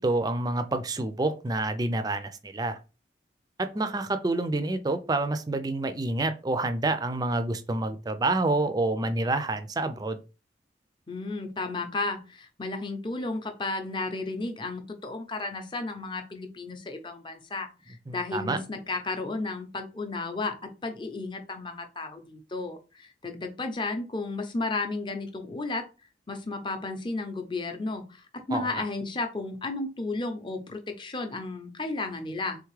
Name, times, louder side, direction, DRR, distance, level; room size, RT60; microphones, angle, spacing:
voice 1, 0.0-2.8 3.6-10.2 18.1-18.6 28.5-28.8, right 2 dB, 20° right, 10 dB, 0.4 m, -28 dB
voice 2, 11.1-25.9 26.3-32.6, left 3 dB, 25° left, 6 dB, 0.6 m, -33 dB
3.9 x 3.5 x 3.2 m, 0.31 s
head